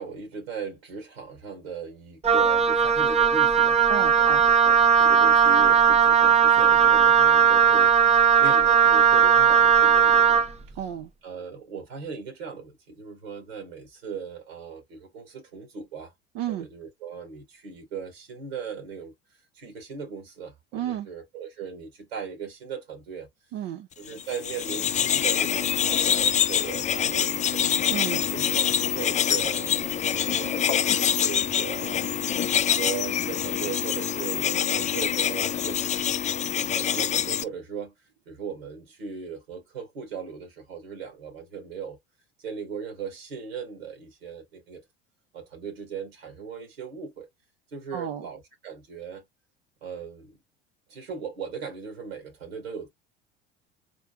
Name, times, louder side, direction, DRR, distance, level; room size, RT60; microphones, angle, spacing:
voice 1, 0.0-3.9 4.2-10.4 11.2-16.1 16.5-23.3 24.0-27.7 28.3-32.0 32.7-35.8 36.7-38.0 38.3-42.0 42.4-44.8 45.3-47.3 47.7-49.3 49.8-50.4 50.9-52.9, right 6 dB, 80° right, 2.0 m, -38 dB
Wind instrument woodwind instrument, 2.2-10.5, right 7 dB, 20° right, 0.7 m, -18 dB
voice 2, 3.9-4.4 10.8-11.1 16.3-16.7 20.7-21.1 23.5-23.9 27.9-28.2 47.9-48.2, right 11 dB, 55° right, 0.9 m, -32 dB
sound 1, 24.2-37.4, left 9 dB, 25° left, 0.4 m, -25 dB
4.4 x 3.9 x 2.3 m
hypercardioid pair, 70°, 30 cm